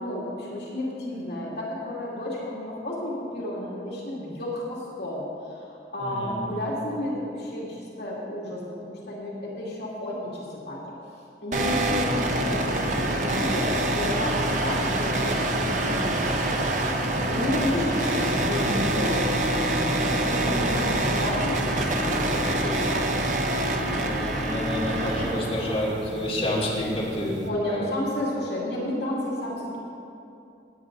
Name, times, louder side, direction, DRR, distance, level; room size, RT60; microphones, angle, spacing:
voice 1, 0.0-5.2 5.5-5.7 5.9-10.8 11.4-16.1 16.8-23.3 27.4-29.8, left 1 dB, 65° left, -6 dB, 2.5 m, -32 dB
voice 2, 6.0-6.4 17.1-17.7 23.8-27.9, equal, 35° left, -7 dB, 2.7 m, -30 dB
sound 1, 11.5-27.5, right 1 dB, 45° right, 1.0 m, -26 dB
17.5 x 9.3 x 3.9 m, 2.6 s
head